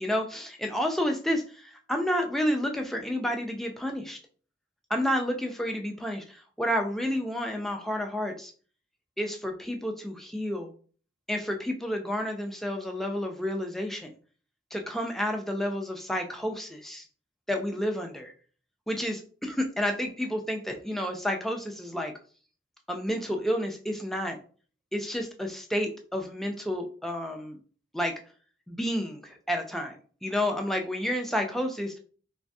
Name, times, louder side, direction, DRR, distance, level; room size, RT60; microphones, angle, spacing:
voice 1, 0.0-4.2 4.9-8.5 9.2-10.7 11.3-14.1 14.7-17.0 17.5-18.3 18.9-22.1 22.9-24.4 24.9-27.6 27.9-28.1 28.7-30.0 30.2-32.0, equal, ahead, 2 dB, 0.3 m, -30 dB
3.2 x 2.2 x 2.6 m, 0.41 s
head